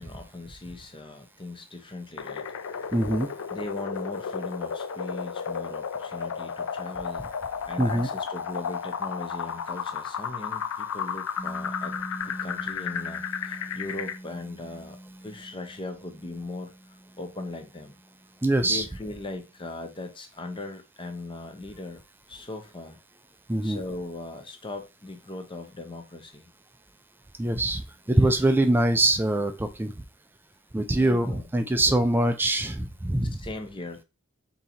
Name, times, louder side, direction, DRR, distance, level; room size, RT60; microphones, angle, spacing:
voice 1, 0.0-2.5 3.5-7.3 7.7-12.0 12.2-18.0 18.6-22.0 22.3-23.0 23.6-26.5 28.1-28.3 31.0-31.5 31.9-32.0 33.3-34.0, left 2 dB, 25° left, 0.6 m, -39 dB
sound 1, 2.2-14.2, left 7 dB, 70° left, 0.4 m, -33 dB
voice 2, 2.9-3.3 7.8-8.1 18.4-18.8 23.5-23.8 27.4-29.9 30.7-33.4, right 1 dB, 10° right, 0.3 m, -23 dB
Piano, 11.4-18.7, right 1 dB, 45° left, 1.2 m, -43 dB
3.8 x 2.8 x 4.2 m
head